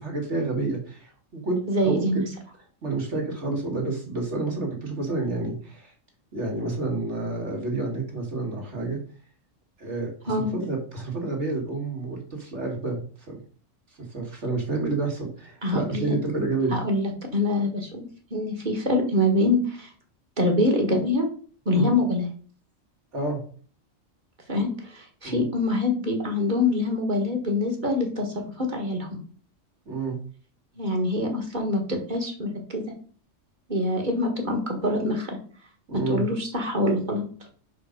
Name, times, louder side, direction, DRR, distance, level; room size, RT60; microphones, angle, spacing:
voice 1, 0.0-2.2 2.8-5.9 6.3-9.0 9.8-13.0 13.3-13.4 14.1-16.7 21.7-21.9 23.1-23.4 25.2-25.4 29.9-30.2 35.9-36.3, right 3 dB, 60° right, 0 dB, 2.5 m, -29 dB
voice 2, 1.7-2.3 10.3-10.5 15.6-16.2 16.7-19.9 20.4-21.3 21.7-22.3 24.5-29.1 30.8-32.8 33.7-35.4 35.9-37.3, left 1 dB, 40° right, 2 dB, 1.8 m, -25 dB
5.9 x 5.2 x 5.2 m, 0.43 s
omnidirectional pair, 1.3 m